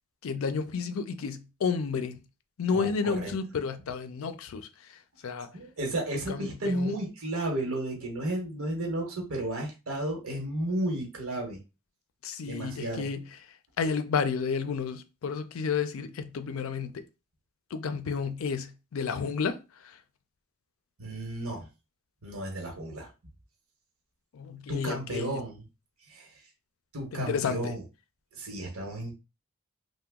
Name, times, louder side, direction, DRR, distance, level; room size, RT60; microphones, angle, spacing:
voice 1, 0.2-2.2 2.6-4.7 5.2-5.5 6.3-7.0 12.2-13.3 13.8-17.0 17.7-19.6 19.8-20.0 24.3-25.4 27.1-27.7, left 5 dB, 75° left, 0.4 m, -31 dB
voice 2, 2.7-3.3 5.5-11.6 12.4-13.1 21.0-21.7 22.2-23.1 24.7-25.6 26.1-26.4 26.9-27.8 28.3-29.1, right 1 dB, 80° right, 1.0 m, -33 dB
2.9 x 2.1 x 3.5 m
head